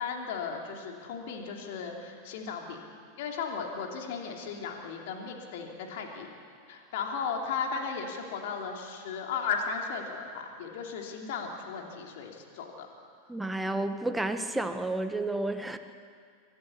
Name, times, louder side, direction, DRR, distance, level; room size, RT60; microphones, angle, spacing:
voice 1, 0.0-2.8 3.2-6.3 6.7-12.9, left 5 dB, 60° left, 2 dB, 2.9 m, -35 dB
voice 2, 13.3-15.8, right 2 dB, 5° right, 8 dB, 1.4 m, -31 dB
24.0 x 14.0 x 8.6 m, 2.2 s
figure-of-eight pair, 90°, 0 cm